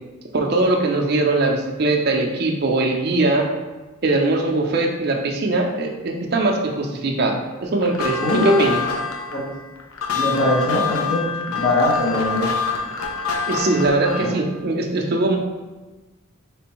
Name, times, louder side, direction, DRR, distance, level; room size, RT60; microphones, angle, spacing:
voice 1, 0.3-3.5 4.0-8.8 13.5-15.4, right 2 dB, 50° right, 1 dB, 0.5 m, -21 dB
sound 1, 7.8-14.4, left 5 dB, 85° left, 0.6 m, -26 dB
voice 2, 8.2-8.7 9.3-9.5 10.1-12.5 14.2-14.3, left 1 dB, 50° left, -5 dB, 0.9 m, -21 dB
4.3 x 3.4 x 3.0 m, 1.2 s
head